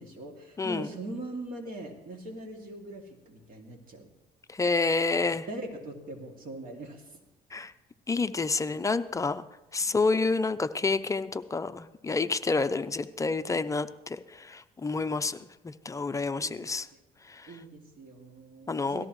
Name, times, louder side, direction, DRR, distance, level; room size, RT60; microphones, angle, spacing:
voice 1, 0.0-4.1 5.5-7.1 9.8-9.9 16.4-16.7 17.5-19.1, right 2 dB, 55° right, 2 dB, 2.4 m, -41 dB
voice 2, 0.6-0.9 4.5-5.5 7.5-7.7 8.1-9.4 9.7-15.4 15.6-16.9 17.3-17.5 18.7-19.0, left 3 dB, 20° left, 11 dB, 0.5 m, -29 dB
18.0 x 14.0 x 3.1 m, 0.98 s
cardioid pair, 110°, 17 cm